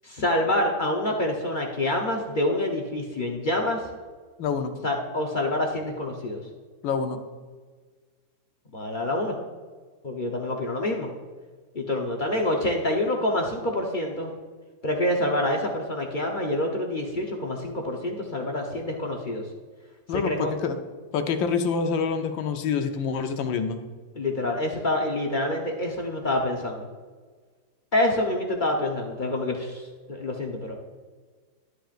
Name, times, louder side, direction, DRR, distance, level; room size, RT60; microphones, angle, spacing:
voice 1, 0.0-3.8 4.8-6.4 8.7-9.4 10.0-11.1 11.7-14.3 14.8-19.4 20.1-20.5 24.2-26.9 27.9-29.8 30.1-30.7, left 1 dB, 40° left, 0 dB, 0.7 m, -27 dB
voice 2, 4.4-4.8 6.8-7.2 20.1-20.8 21.1-23.8, left 5 dB, 85° left, 6 dB, 1.5 m, -26 dB
12.5 x 10.5 x 2.5 m, 1.5 s
omnidirectional pair, 2.0 m